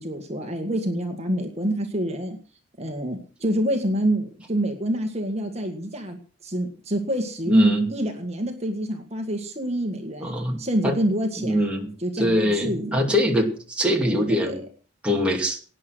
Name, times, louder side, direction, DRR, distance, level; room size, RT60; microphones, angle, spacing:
voice 1, 0.0-2.4 2.8-11.7 12.0-13.1 14.1-14.6, equal, 30° right, 4 dB, 1.9 m, -27 dB
voice 2, 7.5-7.8 10.2-10.9 11.4-11.9 12.2-14.6 15.0-15.6, equal, 5° right, 0 dB, 2.4 m, -22 dB
18.0 x 9.9 x 6.3 m, 0.41 s
head